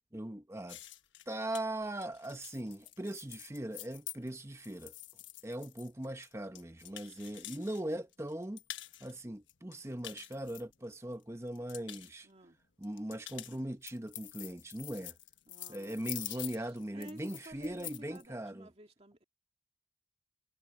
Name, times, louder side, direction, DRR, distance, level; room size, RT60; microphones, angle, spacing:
voice 1, 0.1-0.8 1.3-4.9 5.4-8.6 9.0-12.3 12.8-15.1 15.7-18.7, right 1 dB, 15° right, 0.9 m, -40 dB
Coins in Bank, 0.7-7.8 8.1-9.1 9.5-11.1 11.5-12.1 12.8-18.2, left 14 dB, 75° left, 1.2 m, -47 dB
voice 2, 12.2-12.6 15.5-16.2 16.5-19.2, right 1 dB, 30° right, 2.6 m, -53 dB
head